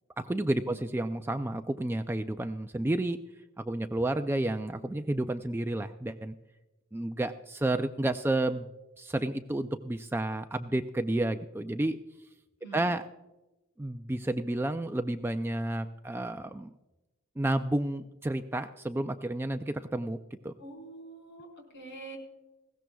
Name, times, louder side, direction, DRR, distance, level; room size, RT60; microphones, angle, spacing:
voice 1, 0.2-3.2 3.6-6.3 6.9-8.7 9.0-12.0 12.7-13.0 13.8-16.7 17.4-20.2 20.4-20.5, right 1 dB, 10° right, 7 dB, 0.3 m, -31 dB
voice 2, 20.6-22.2, right 3 dB, 50° left, 1 dB, 4.4 m, -46 dB
20.0 x 16.5 x 2.3 m, 1.0 s
head